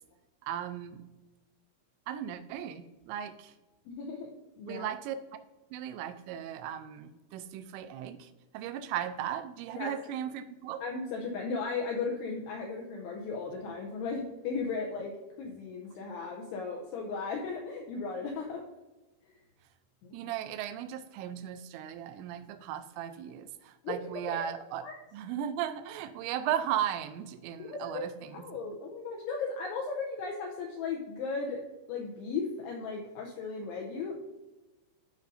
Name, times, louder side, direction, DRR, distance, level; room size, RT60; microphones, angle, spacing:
voice 1, 0.4-1.0 2.1-3.5 4.7-5.2 5.7-10.8 20.1-24.8 25.1-28.4, right 10 dB, 85° right, 10 dB, 2.6 m, -36 dB
voice 2, 3.9-4.3 4.6-4.9 9.8-9.9 10.8-18.6 19.2-19.4 20.0-20.3 23.8-24.0 24.3-24.5 24.8-24.9 27.6-28.0 28.3-31.6 31.9-34.2, left 4 dB, 85° left, 0 dB, 2.4 m, -36 dB
13.0 x 5.1 x 2.6 m, 1.1 s
omnidirectional pair, 5.5 m